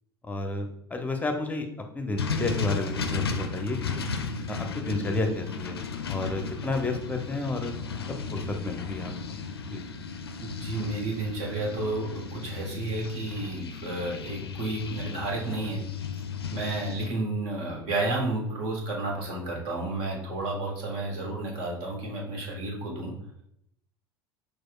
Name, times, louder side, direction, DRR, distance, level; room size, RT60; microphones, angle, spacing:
voice 1, 0.2-1.7 1.9-4.0 4.5-5.8 6.1-7.7 8.1-9.1 9.7-9.8, left 2 dB, 10° left, 5 dB, 0.7 m, -31 dB
sound 1, 2.2-17.1, left 5 dB, 85° left, 0.4 m, -35 dB
voice 2, 10.4-15.8 16.5-23.1, right 2 dB, 55° right, -1 dB, 1.3 m, -31 dB
6.1 x 2.4 x 2.4 m, 0.75 s
figure-of-eight pair, 75°, 13 cm